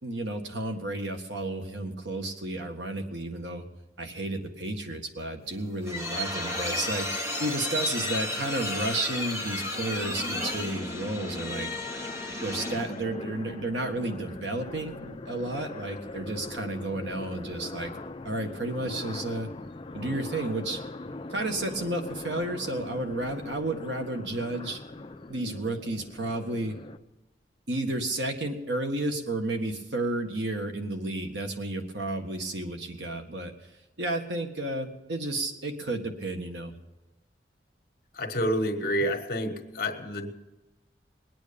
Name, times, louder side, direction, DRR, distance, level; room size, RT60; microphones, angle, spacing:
voice 1, 0.0-3.6 4.0-11.7 12.4-17.9 18.2-19.5 19.9-20.8 21.3-24.8 25.3-26.8 27.7-33.5 34.0-36.7, right 2 dB, 90° right, 5 dB, 1.6 m, -32 dB
sound 1, 5.5-13.0, left 1 dB, 15° right, 1.0 m, -33 dB
sound 2, 9.7-27.0, left 2 dB, 30° left, 0.5 m, -41 dB
voice 2, 38.2-40.3, equal, 55° left, 6 dB, 1.5 m, -28 dB
20.5 x 9.3 x 5.3 m, 1.1 s
head